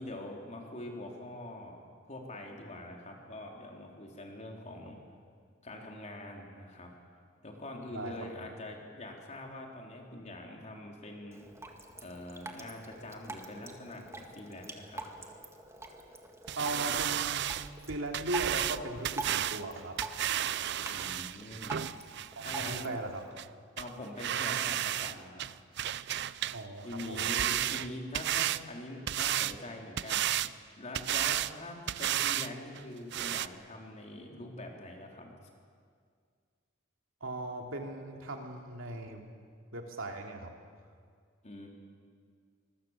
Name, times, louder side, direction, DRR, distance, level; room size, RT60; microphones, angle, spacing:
voice 1, 0.0-1.8 2.1-5.0 5.6-6.9 7.4-11.4 12.0-15.0 20.9-21.8 22.4-22.9 23.8-25.5 26.8-30.2 30.8-35.3 41.4-41.7, left 1 dB, 35° left, 0 dB, 4.0 m, -44 dB
Drip, 11.3-23.3, right 2 dB, 15° right, 2.0 m, -46 dB
sound 1, 16.5-22.9 23.4-23.5 23.8-23.9 24.2-25.1 25.4-26.6 26.9-28.6 29.1-29.6 30.0-30.5 30.9-31.5 31.9-32.5 32.8-32.9 33.1-33.5, right 11 dB, 60° right, 0.6 m, -32 dB
voice 2, 16.6-17.5 17.9-20.0 22.3-23.2 26.5-27.4 37.2-39.3 39.7-40.5, right 2 dB, 80° right, 2 dB, 3.0 m, -38 dB
25.5 x 22.0 x 7.5 m, 2.1 s
head